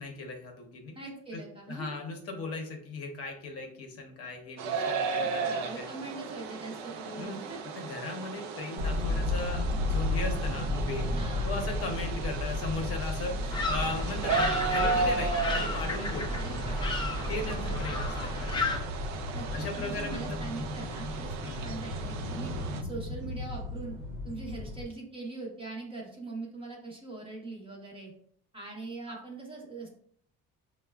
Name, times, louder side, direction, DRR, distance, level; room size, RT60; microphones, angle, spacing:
voice 1, 0.0-0.9 1.3-1.4 1.7-5.9 7.2-7.4 7.8-11.1 11.4-16.4 17.3-18.8 19.5-20.4 21.4-21.7 29.1-29.2, left 3 dB, 50° left, 2 dB, 0.7 m, -37 dB
voice 2, 0.9-2.0 5.2-7.6 11.1-11.7 16.4-17.1 17.4-17.8 19.3-21.3 21.6-22.5 22.8-24.0 24.2-28.1 28.5-29.9, right 3 dB, 15° right, -2 dB, 0.7 m, -42 dB
sound 1, 4.6-22.8, right 4 dB, 60° right, 0.4 m, -35 dB
sound 2, 8.8-24.8, left 2 dB, 80° right, 0.9 m, -34 dB
sound 3, 13.5-18.8, left 2 dB, 15° left, 0.3 m, -33 dB
5.7 x 2.1 x 2.2 m, 0.64 s
cardioid pair, 160°, 31 cm